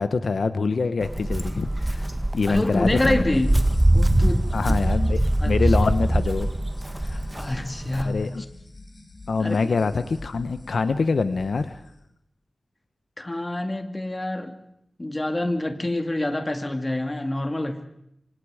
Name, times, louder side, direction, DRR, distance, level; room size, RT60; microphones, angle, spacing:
voice 1, 0.0-2.1 2.3-3.4 4.5-6.5 6.9-7.2 8.0-8.4 9.3-11.8, left 4 dB, 80° left, 11 dB, 1.0 m, -25 dB
Walk footsteps, 1.0-8.0, right 1 dB, 15° right, 1.7 m, -23 dB
voice 2, 2.5-3.5 3.9-4.8 5.4-5.8 7.1-8.2 9.4-10.0 13.2-14.6 15.0-17.8, left 1 dB, 25° left, 7 dB, 2.3 m, -27 dB
sound 1, 3.3-11.9, left 2 dB, 50° left, 5.1 m, -45 dB
27.0 x 26.0 x 5.0 m, 0.77 s
wide cardioid pair, 105°, 0 cm